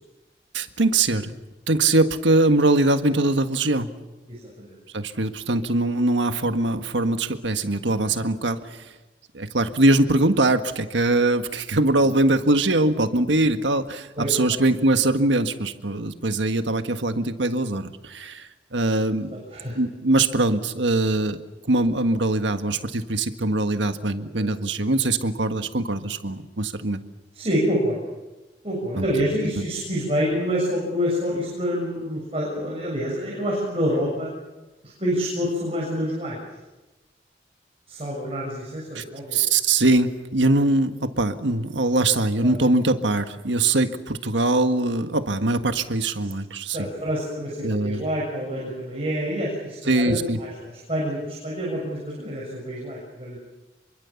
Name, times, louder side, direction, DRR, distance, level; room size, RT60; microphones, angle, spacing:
voice 1, 0.5-1.3 1.7-3.9 4.9-8.9 9.3-19.4 19.7-21.4 21.6-27.0 29.0-29.1 29.6-29.7 38.9-39.0 39.3-46.9 47.6-48.0 49.9-50.4, right 2 dB, 90° right, 8 dB, 1.6 m, -22 dB
voice 2, 4.3-4.8 14.2-14.3 19.5-19.8 24.2-24.5 27.3-28.0 28.6-34.3 34.8-36.4 37.9-39.4 42.4-42.5 46.7-53.4, equal, 30° right, -3 dB, 7.1 m, -27 dB
26.5 x 24.0 x 7.2 m, 1.1 s
head